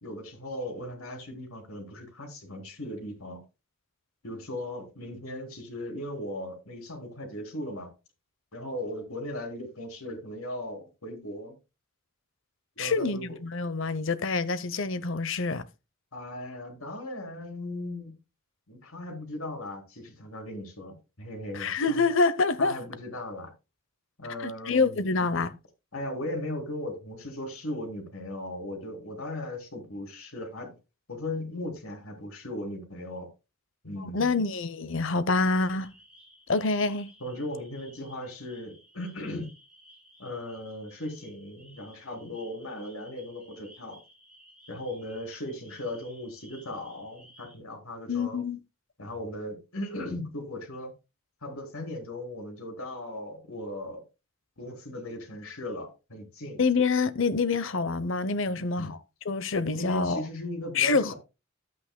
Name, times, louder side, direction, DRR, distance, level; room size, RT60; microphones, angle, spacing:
voice 1, 0.0-3.4 4.2-7.9 8.5-11.6 12.8-13.4 16.1-18.1 18.7-22.0 22.6-23.5 24.2-25.0 25.9-30.8 31.1-33.3 33.8-34.4 37.2-39.6 40.2-44.0 44.7-48.4 49.0-50.9 51.4-54.0 54.6-56.6 58.5-58.9 59.7-61.1, left 1 dB, 75° left, 3.6 m, -37 dB
voice 2, 12.8-15.7 21.5-22.7 24.4-25.5 34.1-35.9 36.5-37.1 48.1-48.6 56.6-59.0 59.3-60.2 60.7-61.1, left 4 dB, 60° left, 0.8 m, -26 dB
sound 1, 35.7-47.6, equal, 5° right, 3.5 m, -56 dB
12.5 x 8.6 x 2.2 m
head